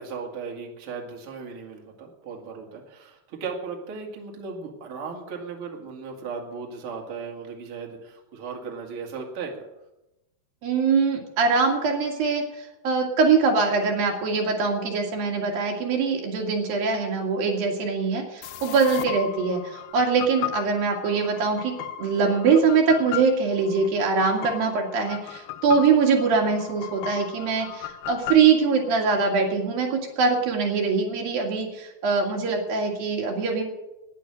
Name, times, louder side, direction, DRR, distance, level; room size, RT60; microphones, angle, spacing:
voice 1, 0.0-9.6, right 5 dB, 40° right, 0 dB, 2.7 m, -36 dB
voice 2, 10.6-21.7 22.0-33.6, right 5 dB, 70° right, 1 dB, 3.7 m, -23 dB
sound 1, 18.4-29.2, left 12 dB, 80° left, 2.6 m, -36 dB
11.5 x 10.5 x 8.7 m, 0.93 s
omnidirectional pair, 4.3 m